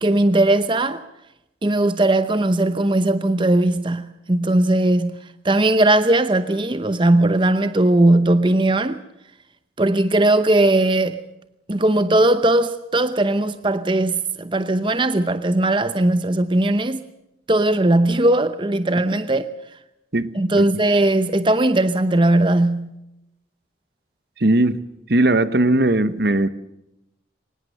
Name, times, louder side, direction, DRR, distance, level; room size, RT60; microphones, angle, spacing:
voice 1, 0.0-1.0 1.6-5.2 5.4-9.0 9.8-11.2 11.7-17.1 17.5-19.5 20.3-22.9, right 1 dB, 25° right, 0.8 m, -18 dB
voice 2, 20.1-20.7 24.4-24.8 25.1-26.5, right 1 dB, 60° right, 1.1 m, -18 dB
24.5 x 20.0 x 6.6 m
head